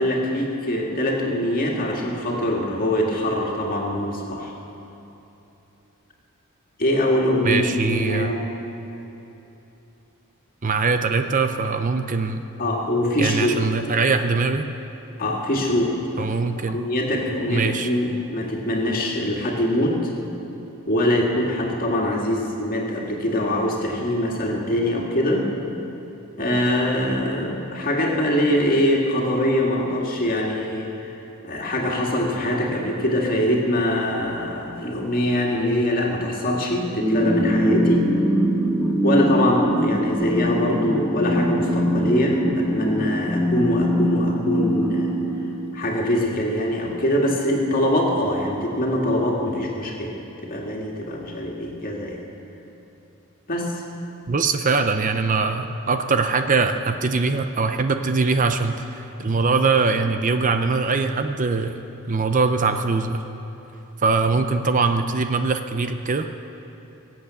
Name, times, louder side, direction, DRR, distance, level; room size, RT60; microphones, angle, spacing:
voice 1, 0.0-4.5 6.8-8.5 12.6-13.6 15.2-16.3 16.7-20.1 20.9-25.5 26.4-31.1 31.4-38.1 39.0-45.1 45.7-50.1 50.4-52.2 53.5-53.8, left 1 dB, 40° left, -1 dB, 2.1 m, -23 dB
voice 2, 7.4-8.3 10.6-12.4 13.2-14.7 16.2-16.8 17.5-17.9 54.3-61.7 62.1-63.2 64.0-66.3, right 4 dB, 35° right, 8 dB, 0.6 m, -22 dB
sound 1, 37.0-46.0, equal, 5° left, 1.7 m, -22 dB
23.0 x 8.1 x 7.0 m, 3.0 s
head